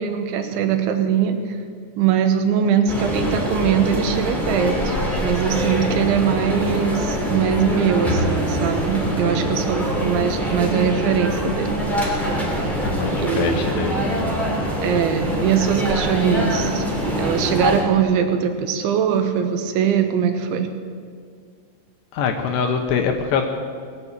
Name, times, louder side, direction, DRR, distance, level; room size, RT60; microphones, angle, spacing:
voice 1, 0.0-1.6 2.0-11.8 13.2-13.9 14.8-16.9 17.2-20.7, right 7 dB, 80° right, 7 dB, 3.1 m, -21 dB
sound 1, 2.9-17.8, equal, ahead, 1.3 m, -24 dB
voice 2, 9.0-9.6 12.0-12.5 12.8-14.0 22.1-23.5, left 6 dB, 75° left, 5 dB, 2.7 m, -24 dB
19.0 x 8.3 x 8.6 m, 2.1 s
omnidirectional pair, 5.7 m